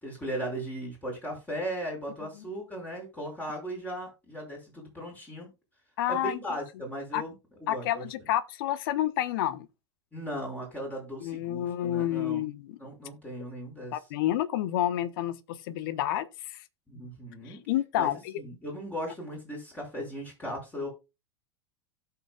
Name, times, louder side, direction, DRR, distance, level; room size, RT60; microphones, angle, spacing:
voice 1, 0.0-5.5 6.1-7.3 7.6-8.1 10.1-12.5 12.8-14.0 16.9-17.6 17.9-20.9, equal, 10° left, 5.3 m, -37 dB
voice 2, 6.0-6.4 7.1-7.2 7.7-9.7 11.2-12.8 13.9-16.6 17.5-18.3, left 12 dB, 55° left, 1.0 m, -29 dB
17.0 x 5.9 x 2.3 m
figure-of-eight pair, 90°, 14 cm